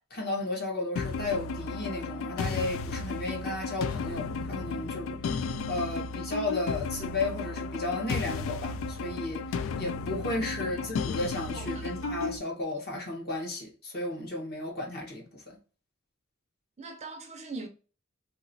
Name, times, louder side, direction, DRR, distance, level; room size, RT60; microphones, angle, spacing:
voice 1, 0.1-15.6, left 2 dB, 50° left, 1.2 m, -34 dB
sound 1, 1.0-12.4, left 4 dB, 65° left, 0.3 m, -34 dB
voice 2, 11.5-12.2 16.8-17.7, right 3 dB, 35° right, 0.5 m, -42 dB
2.9 x 2.9 x 2.6 m
head